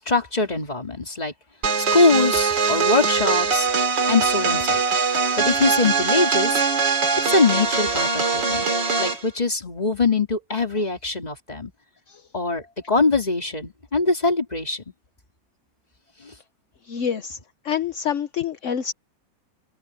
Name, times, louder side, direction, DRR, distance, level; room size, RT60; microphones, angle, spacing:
voice 1, 0.0-1.3 1.9-3.7 4.1-4.8 5.4-6.6 7.2-8.7 9.0-11.7 12.3-14.8 16.2-16.3, left 3 dB, 20° left, 2.8 m, -22 dB
sound 1, 1.6-9.2, right 5 dB, 90° right, 3.2 m, -22 dB
voice 2, 16.8-17.4 17.6-18.9, left 8 dB, 55° left, 1.0 m, -27 dB
open air
omnidirectional pair, 1.9 m